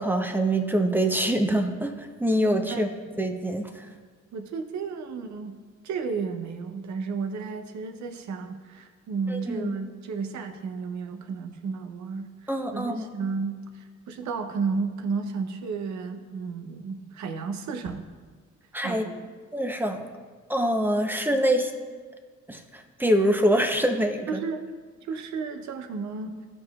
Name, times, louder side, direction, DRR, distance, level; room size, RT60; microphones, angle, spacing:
voice 1, 0.0-2.9 3.2-3.9 9.3-9.7 12.5-13.1 18.7-19.0 19.5-20.1 20.5-21.7 22.5-24.4, right 1 dB, 5° right, 5 dB, 0.7 m, -25 dB
voice 2, 4.3-5.6 5.8-18.1 18.8-19.3 24.3-24.6 25.0-26.4, right 5 dB, 70° right, 6 dB, 0.7 m, -33 dB
13.0 x 4.9 x 2.4 m, 1.5 s
cardioid pair, 90°, 30 cm